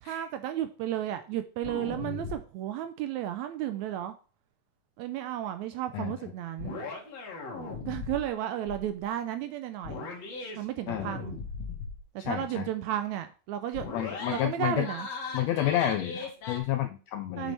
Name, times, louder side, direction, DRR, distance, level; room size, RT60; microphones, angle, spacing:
voice 1, 0.0-4.1 5.0-6.8 7.9-10.1 10.6-11.4 12.2-13.9 14.3-15.1 17.4-17.5, right 11 dB, 80° right, 9 dB, 1.8 m, -33 dB
sound 1, 1.6-2.4 6.6-8.3 8.7-8.9 9.8-10.6 10.9-12.0 13.7-14.5 14.8-16.6, left 4 dB, 60° left, 2.8 m, -38 dB
voice 2, 12.2-12.7 13.9-14.9 15.3-17.5, left 12 dB, 80° left, 8 dB, 1.6 m, -30 dB
7.4 x 7.0 x 3.3 m, 0.38 s
omnidirectional pair, 3.5 m